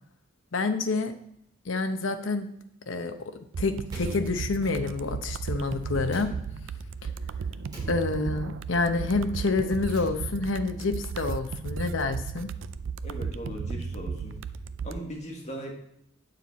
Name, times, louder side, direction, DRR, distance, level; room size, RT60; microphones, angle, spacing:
voice 1, 0.5-1.1 1.7-2.5 2.9-6.3 7.9-12.5, left 3 dB, 85° left, 8 dB, 0.8 m, -28 dB
sound 1, 3.5-15.0, right 5 dB, 80° right, 0.4 m, -35 dB
Slam, 3.9-5.0 6.0-6.9 7.7-8.6 9.7-10.7, equal, 20° right, 3.4 m, -48 dB
voice 2, 13.0-14.4 14.8-15.7, equal, 35° left, 0 dB, 1.6 m, -38 dB
9.4 x 6.8 x 4.2 m, 0.75 s
head